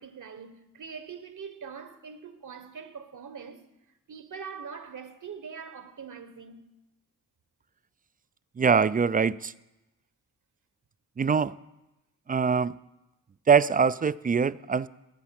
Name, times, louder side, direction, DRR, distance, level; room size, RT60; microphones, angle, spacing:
voice 1, 0.0-3.6 4.1-6.6, right 6 dB, 60° right, 1.3 m, -43 dB
voice 2, 8.6-9.5 11.2-11.5 12.3-12.7 13.5-14.9, right 6 dB, 25° right, 0.4 m, -23 dB
14.5 x 8.2 x 5.9 m
cardioid pair, 55°, 35 cm